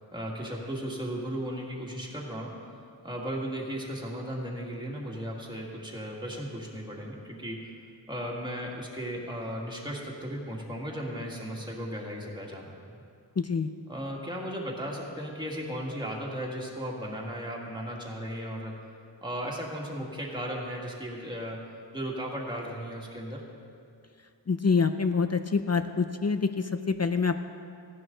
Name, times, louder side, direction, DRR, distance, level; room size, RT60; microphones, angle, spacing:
voice 1, 0.1-7.7 8.1-13.0 13.9-18.8 19.2-21.7 21.9-23.4, equal, 10° right, -3 dB, 2.0 m, -36 dB
voice 2, 13.4-13.7 24.5-27.4, left 5 dB, 35° left, 9 dB, 0.5 m, -26 dB
15.5 x 11.0 x 3.9 m, 2.4 s
wide cardioid pair, 65°, 45 cm